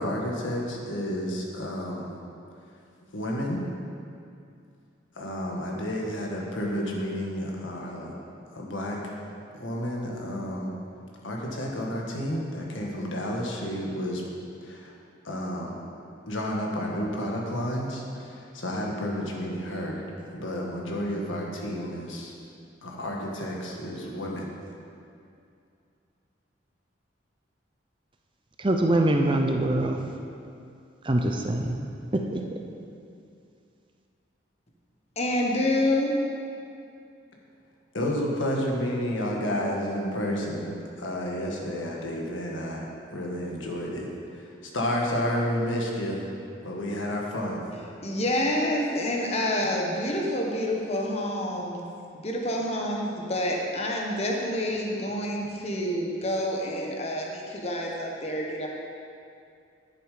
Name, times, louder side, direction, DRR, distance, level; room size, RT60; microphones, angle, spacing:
voice 1, 0.0-2.1 3.1-3.6 5.1-8.1 8.5-9.2 9.6-10.7 11.2-14.2 14.6-14.9 15.2-15.8 16.3-20.0 20.3-22.3 22.8-24.5 37.9-40.7 41.0-42.9 43.1-46.2 46.6-47.6, equal, 80° left, -1 dB, 1.6 m, -31 dB
voice 2, 28.6-30.0 31.0-31.8 32.1-32.4, right 1 dB, 25° right, 3 dB, 0.6 m, -24 dB
voice 3, 35.2-36.2 48.0-51.8 52.2-58.7, left 1 dB, 30° left, -1 dB, 1.1 m, -28 dB
10.5 x 7.2 x 5.0 m, 2.5 s
head